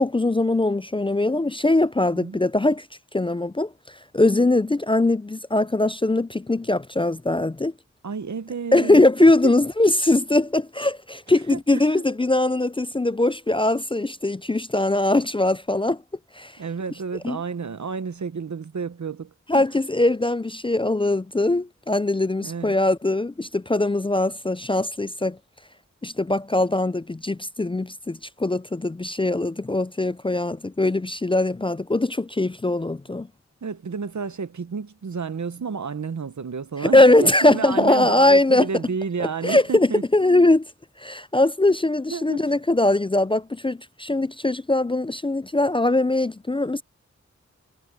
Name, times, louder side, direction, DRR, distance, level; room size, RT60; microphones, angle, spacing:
voice 1, 0.0-2.9 3.1-3.7 4.1-7.7 8.7-16.0 16.4-16.5 17.2-17.4 19.5-25.4 26.0-33.3 36.9-38.7 39.2-40.7 41.0-46.8, left 2 dB, 20° left, 0.3 m, -21 dB
voice 2, 8.0-9.5 11.5-12.0 16.6-19.6 22.4-22.8 33.6-40.0 42.1-42.5, right 5 dB, 75° right, 0.9 m, -31 dB
wide cardioid pair, 75°, 29 cm